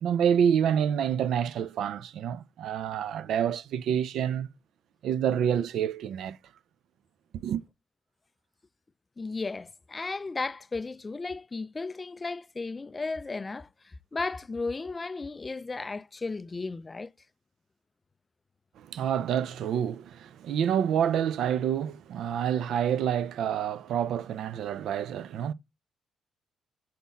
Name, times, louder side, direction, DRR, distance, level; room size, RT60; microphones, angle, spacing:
voice 1, 0.0-4.5 5.0-6.4 7.4-7.6 18.8-25.5, right 9 dB, 75° right, 0.5 m, -28 dB
voice 2, 9.2-17.1, left 3 dB, 25° left, 0.3 m, -35 dB
8.4 x 3.9 x 4.0 m
cardioid pair, 90°, 0 cm